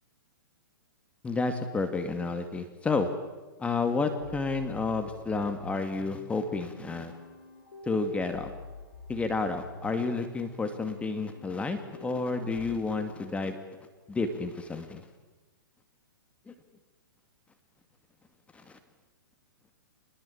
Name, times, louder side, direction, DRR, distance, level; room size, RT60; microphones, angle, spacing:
voice 1, 1.2-3.1 3.6-7.1 7.9-8.5 9.1-13.6 14.1-15.0 16.5-16.6 18.5-18.8, left 3 dB, 10° left, 7 dB, 2.3 m, -30 dB
sound 1, 4.2-12.8, left 1 dB, 85° left, 6.7 m, -47 dB
26.0 x 21.5 x 8.7 m, 1.2 s
hypercardioid pair, 130°, 12 cm